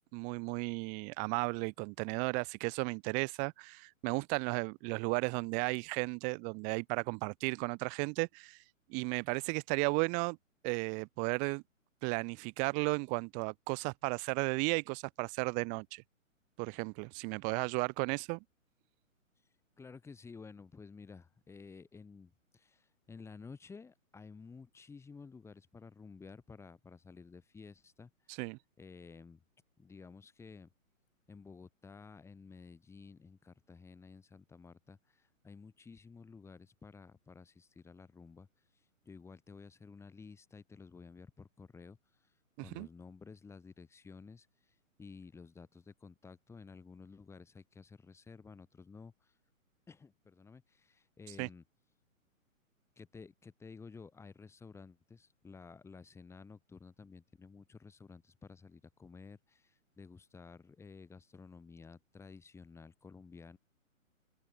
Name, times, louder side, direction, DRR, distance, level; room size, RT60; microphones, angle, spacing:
voice 1, 0.0-8.6 8.9-10.4 10.6-11.6 12.0-16.0 16.6-18.4 28.3-28.6 42.7-42.9 51.4-51.5, right 34 dB, 20° right, 1.3 m, -34 dB
voice 2, 19.8-28.4 28.8-29.4 29.8-30.7 31.3-38.5 38.7-49.3 49.9-51.6 53.0-63.6, left 5 dB, 5° left, 3.6 m, -53 dB
figure-of-eight pair, 125°, 41 cm